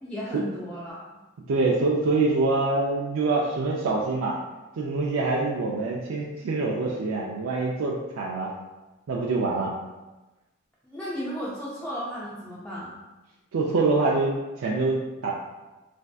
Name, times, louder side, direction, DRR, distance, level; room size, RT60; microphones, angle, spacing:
voice 1, 0.0-1.0 10.8-12.9, equal, 5° left, -8 dB, 0.4 m, -34 dB
voice 2, 1.5-4.4 4.8-8.5 9.1-9.7 13.5-15.3, right 3 dB, 85° right, -3 dB, 0.4 m, -25 dB
3.3 x 2.6 x 2.3 m, 1.1 s
head